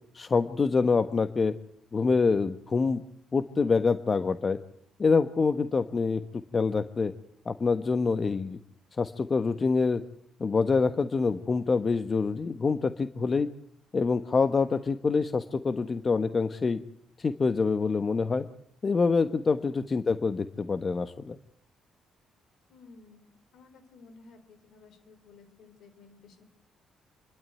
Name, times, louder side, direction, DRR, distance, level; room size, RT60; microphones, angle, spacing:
voice 1, 0.1-1.5 1.9-3.0 3.3-4.6 5.0-6.2 6.5-7.1 7.4-8.6 9.0-10.0 10.4-13.5 13.9-16.8 17.2-18.4 18.8-21.4, left 4 dB, 40° left, 11 dB, 1.3 m, -26 dB
voice 2, 22.7-23.3 23.5-26.4, left 4 dB, 70° left, 10 dB, 4.4 m, -54 dB
28.5 x 12.5 x 9.3 m, 0.70 s
supercardioid pair, 60°, 0 cm